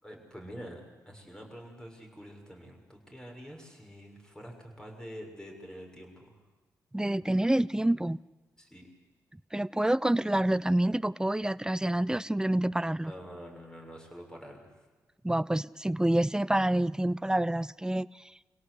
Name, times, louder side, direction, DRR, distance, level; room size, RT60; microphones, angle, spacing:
voice 1, 0.0-6.5 8.6-8.9 13.0-14.8, equal, 10° left, 6.6 m, -46 dB
voice 2, 6.9-8.2 9.5-13.1 15.2-18.2, right 1 dB, 10° right, 0.6 m, -27 dB
25.5 x 17.0 x 8.2 m
supercardioid pair, 45°, 7 cm